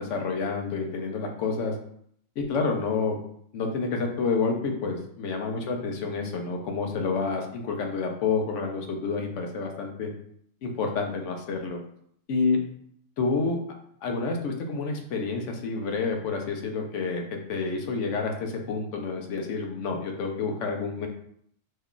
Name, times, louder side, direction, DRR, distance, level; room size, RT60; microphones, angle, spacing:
voice 1, 0.0-1.7 2.4-3.2 3.5-10.1 10.6-11.8 12.3-12.6 13.2-13.6 14.0-17.2 17.5-21.1, left 4 dB, 70° left, 3 dB, 0.9 m, -29 dB
3.2 x 2.3 x 3.6 m, 0.67 s
omnidirectional pair, 1.4 m